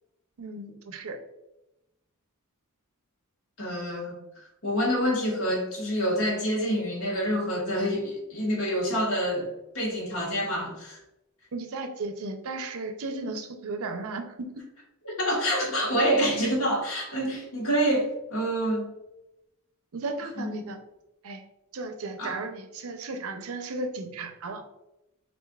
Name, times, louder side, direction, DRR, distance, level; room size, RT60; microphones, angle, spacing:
voice 1, 0.4-1.2 11.5-14.6 19.9-20.8 21.2-21.4 21.7-24.6, right 3 dB, 65° right, 6 dB, 0.5 m, -35 dB
voice 2, 3.6-11.0 15.0-18.9 20.4-20.7 22.2-22.3, equal, 65° left, -2 dB, 1.4 m, -27 dB
6.6 x 2.5 x 2.3 m, 0.92 s
head